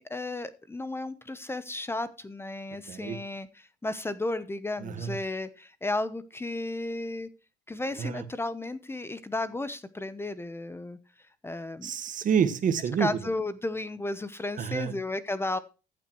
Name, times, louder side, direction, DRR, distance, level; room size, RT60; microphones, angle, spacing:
voice 1, 0.0-7.3 7.7-11.0 11.4-11.9 13.0-15.6, left 2 dB, 15° left, 14 dB, 0.9 m, -33 dB
voice 2, 2.9-3.2 4.8-5.2 7.9-8.2 11.8-13.2 14.6-14.9, right 7 dB, 50° right, 11 dB, 1.6 m, -28 dB
15.0 x 8.6 x 3.1 m, 0.31 s
cardioid pair, 110°, 17 cm